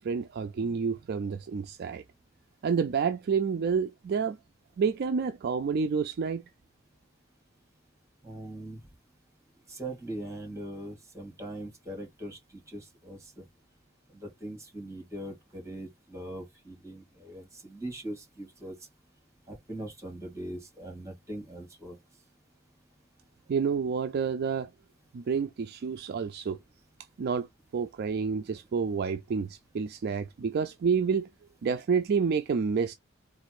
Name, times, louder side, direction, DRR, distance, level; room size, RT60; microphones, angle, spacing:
voice 1, 0.0-2.0 2.6-4.4 4.8-6.4 23.5-24.7 25.1-26.6 27.2-27.5 27.7-31.3 31.6-33.0, right 6 dB, 50° right, 0.4 m, -29 dB
voice 2, 8.2-8.8 9.7-13.5 14.1-18.9 19.5-22.0, right 1 dB, 15° right, 2.4 m, -41 dB
4.0 x 2.5 x 4.6 m
head